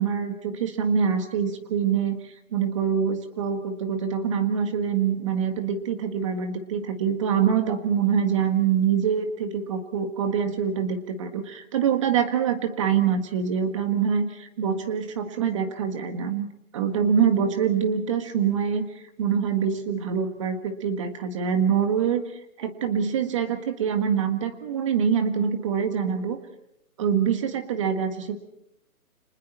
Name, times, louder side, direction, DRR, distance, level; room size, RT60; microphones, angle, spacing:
voice 1, 0.0-2.2 2.5-16.5 16.7-18.9 19.2-22.2 22.6-26.4 27.0-28.4, right 7 dB, 20° right, 7 dB, 1.7 m, -25 dB
30.0 x 26.5 x 4.4 m, 0.79 s
hypercardioid pair, 165°, 44 cm